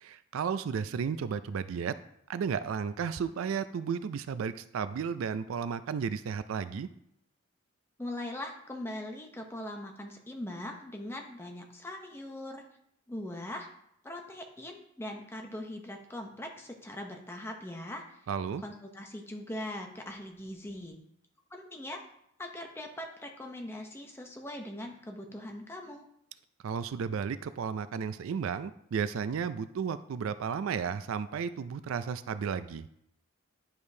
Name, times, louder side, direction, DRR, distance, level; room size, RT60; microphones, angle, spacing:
voice 1, 0.0-1.9 2.3-6.9 18.3-18.6 26.6-32.9, right 6 dB, 75° right, 13 dB, 0.3 m, -33 dB
voice 2, 8.0-12.6 13.1-13.7 14.0-18.2 18.6-21.0 21.5-22.0 22.4-26.1, left 1 dB, 10° left, 2 dB, 0.7 m, -41 dB
10.5 x 4.9 x 2.7 m, 0.73 s
head